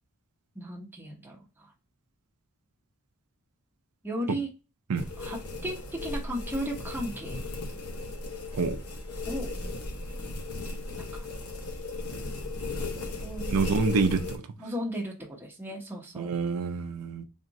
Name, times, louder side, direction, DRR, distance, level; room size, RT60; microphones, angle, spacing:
voice 1, 0.5-1.7 4.0-4.5 5.2-7.4 9.3-9.5 11.0-11.3 13.2-13.6 14.6-16.3, equal, 10° right, 1.0 m, -35 dB
sound 1, 4.9-14.4, left 2 dB, 85° left, 0.8 m, -36 dB
voice 2, 13.5-14.4 16.1-17.2, right 4 dB, 85° right, 0.5 m, -27 dB
3.6 x 2.5 x 4.0 m
head